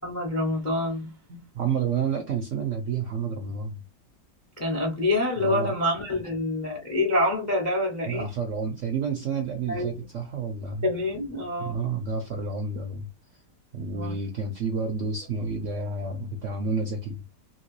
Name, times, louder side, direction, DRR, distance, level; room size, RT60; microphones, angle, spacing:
voice 1, 0.0-1.1 4.6-8.3 9.7-9.9 10.8-11.7 13.8-14.1, left 1 dB, 25° left, 0.3 m, -26 dB
voice 2, 1.3-3.8 5.4-5.7 8.0-10.9 11.6-13.1 13.3-13.4 13.7-17.2, right 5 dB, 70° right, 0.7 m, -30 dB
2.9 x 2.9 x 3.0 m
omnidirectional pair, 1.9 m